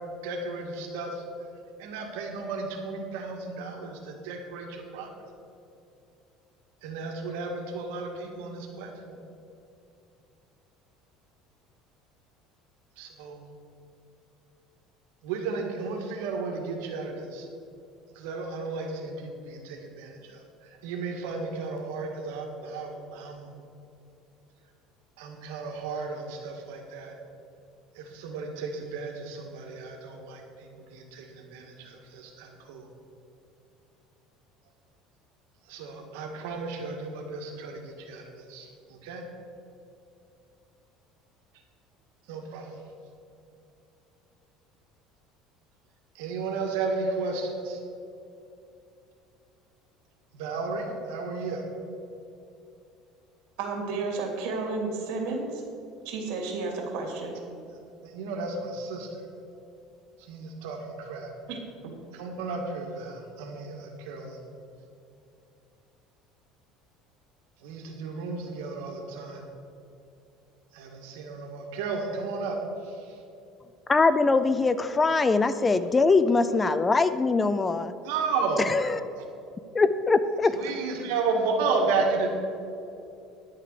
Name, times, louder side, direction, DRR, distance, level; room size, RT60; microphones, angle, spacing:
voice 1, 0.2-1.2 1.8-5.1 6.8-9.2 13.0-13.5 15.2-17.5 18.2-23.5 25.2-27.1 28.0-32.9 35.7-39.2 42.3-42.8 46.2-47.8 50.3-51.6 58.0-59.1 60.3-61.3 62.1-64.4 67.6-69.4 70.7-72.6 72.8-73.2 78.0-78.6 80.5-82.3, right 4 dB, 85° right, 1 dB, 1.9 m, -33 dB
voice 2, 53.6-55.6 56.0-57.3 61.5-61.6, right 3 dB, 70° right, 1 dB, 2.8 m, -32 dB
voice 3, 73.9-77.9 78.7-79.0 79.7-80.6, left 3 dB, 20° left, 13 dB, 0.4 m, -22 dB
10.5 x 6.7 x 6.7 m, 2.6 s
cardioid pair, 130°, 0 cm